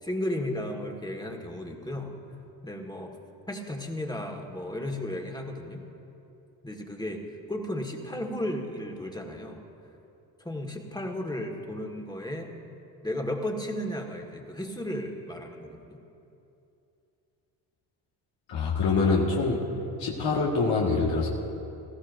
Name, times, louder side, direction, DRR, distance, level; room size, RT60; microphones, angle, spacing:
voice 1, 0.0-2.1 2.6-3.2 3.5-5.8 6.6-7.2 7.5-9.6 10.4-12.5 13.0-16.0, left 1 dB, 10° left, 2 dB, 1.8 m, -34 dB
voice 2, 18.5-19.6 20.0-21.3, left 4 dB, 65° left, -3 dB, 1.8 m, -25 dB
19.0 x 14.5 x 2.7 m, 2.8 s
supercardioid pair, 65°, 48 cm